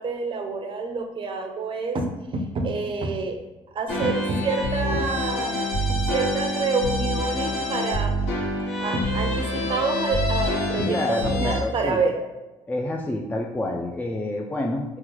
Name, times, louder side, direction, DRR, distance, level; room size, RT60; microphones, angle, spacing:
voice 1, 0.0-3.4 3.7-5.6 5.9-8.1 8.8-12.2, right 4 dB, 45° right, 4 dB, 0.5 m, -27 dB
sound 1, 3.9-11.6, equal, 85° left, 1.1 m, -26 dB
voice 2, 10.9-12.0 12.7-15.0, left 2 dB, 15° left, 1 dB, 0.3 m, -28 dB
3.0 x 2.1 x 3.7 m, 1.1 s
supercardioid pair, 80°, 12 cm